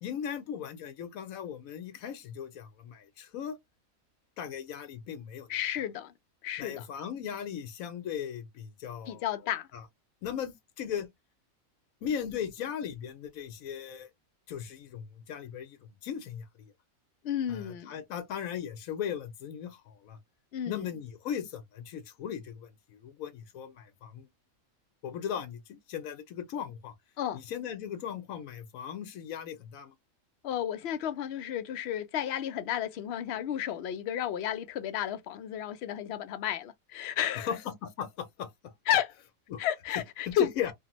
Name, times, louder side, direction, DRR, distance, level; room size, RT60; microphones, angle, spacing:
voice 1, 0.0-3.6 4.4-5.5 6.6-9.3 9.7-9.8 10.2-11.1 12.0-14.1 14.5-16.4 17.5-20.2 20.7-24.3 25.0-26.9 27.3-29.9 37.4-38.5 39.5-39.6 40.3-40.7, left 8 dB, 80° left, 1.2 m, -38 dB
voice 2, 5.5-6.1 6.4-6.9 9.1-9.7 17.2-18.0 20.5-20.9 27.2-27.4 30.4-37.5 38.9-39.1 39.6-40.5, left 10 dB, 65° left, 0.7 m, -32 dB
3.3 x 2.0 x 2.9 m
omnidirectional pair, 1.4 m